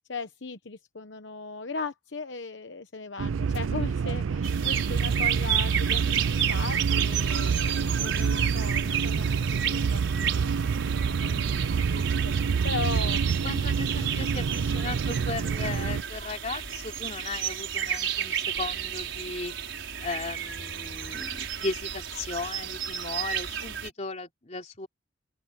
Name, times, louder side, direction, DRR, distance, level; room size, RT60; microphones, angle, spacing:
voice 1, 0.1-10.6 11.2-12.4 12.6-13.2, left 4 dB, 65° left, 1.0 m, -38 dB
sound 1, 3.2-16.0, right 5 dB, 90° right, 0.4 m, -27 dB
sound 2, 4.4-23.9, right 9 dB, 75° right, 5.2 m, -32 dB
voice 2, 8.1-8.6 13.4-19.5 20.0-24.9, left 3 dB, 35° left, 3.3 m, -36 dB
open air
head